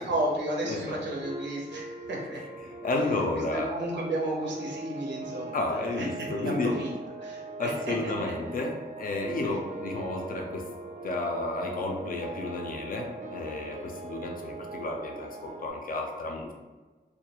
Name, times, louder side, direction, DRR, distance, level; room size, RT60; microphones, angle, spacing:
voice 1, 0.0-2.7 3.3-6.9 7.2-8.3 9.4-9.5, right 1 dB, 90° right, -2 dB, 0.6 m, -33 dB
voice 2, 0.7-1.0 2.8-3.7 5.5-6.8 7.6-10.7 11.0-16.5, left 2 dB, 50° left, 2 dB, 0.4 m, -32 dB
sound 1, 1.2-15.7, right 3 dB, 45° right, 0.4 m, -41 dB
2.3 x 2.1 x 2.8 m, 1.3 s
wide cardioid pair, 165°, 18 cm